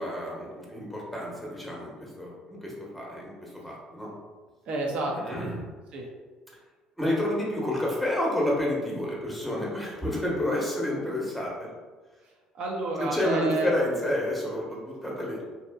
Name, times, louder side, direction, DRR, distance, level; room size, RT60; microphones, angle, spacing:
voice 1, 0.0-4.2 5.2-5.6 7.0-11.7 13.0-15.4, left 1 dB, ahead, -4 dB, 0.9 m, -29 dB
voice 2, 4.7-5.4 5.9-6.1 12.5-13.7, right 3 dB, 65° right, -1 dB, 0.6 m, -30 dB
2.7 x 2.4 x 2.2 m, 1.3 s
supercardioid pair, 75°, 2 cm